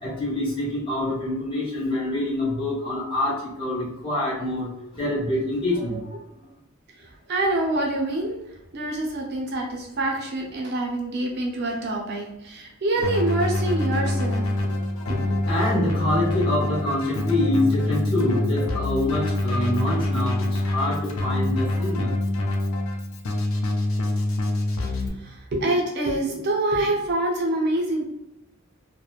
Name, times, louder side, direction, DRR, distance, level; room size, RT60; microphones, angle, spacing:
voice 1, 0.0-6.1 15.0-22.2, left 1 dB, 25° left, -7 dB, 1.0 m, -26 dB
voice 2, 7.0-8.4 8.7-14.5 15.1-15.4 24.9-28.0, right 2 dB, 50° right, -1 dB, 0.5 m, -26 dB
Keyboard (musical), 13.0-25.1, left 1 dB, 70° left, 0.5 m, -25 dB
2.9 x 2.1 x 2.3 m, 0.90 s
head